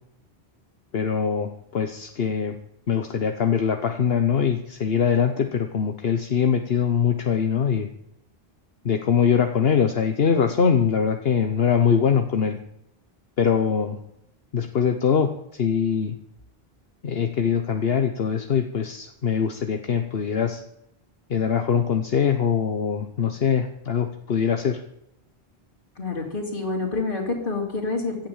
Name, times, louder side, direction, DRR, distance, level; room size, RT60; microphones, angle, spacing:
voice 1, 0.9-2.5 2.9-7.9 8.8-12.6 13.4-14.0 14.5-16.1 17.0-20.6 21.3-24.8, left 7 dB, 70° left, 6 dB, 1.2 m, -22 dB
voice 2, 26.0-28.2, left 3 dB, 55° left, -1 dB, 3.2 m, -27 dB
16.5 x 12.0 x 7.3 m, 0.80 s
omnidirectional pair, 1.0 m